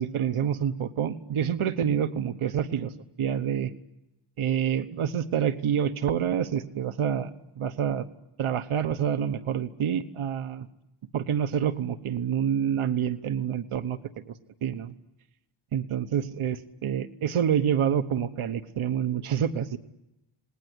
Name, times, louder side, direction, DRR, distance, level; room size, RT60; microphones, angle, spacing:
voice 1, 0.0-2.9 3.2-3.7 4.4-7.3 7.6-8.1 8.4-10.7 11.1-14.0 14.3-14.4 14.6-14.9 15.7-19.8, right 8 dB, 85° right, 11 dB, 1.2 m, -27 dB
28.5 x 20.0 x 9.8 m, 0.92 s
wide cardioid pair, 140°, 49 cm